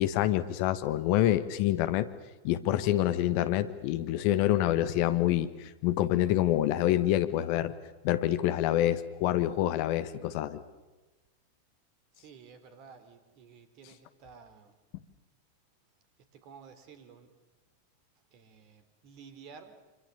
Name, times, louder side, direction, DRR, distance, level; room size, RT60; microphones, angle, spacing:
voice 1, 0.0-2.1 2.4-7.7 8.0-10.6, left 13 dB, 45° left, 12 dB, 1.5 m, -27 dB
voice 2, 12.2-14.7 16.4-17.3 18.3-19.7, right 6 dB, 40° right, 10 dB, 3.5 m, -52 dB
26.5 x 26.5 x 7.0 m, 1.2 s
figure-of-eight pair, 90°, 0 cm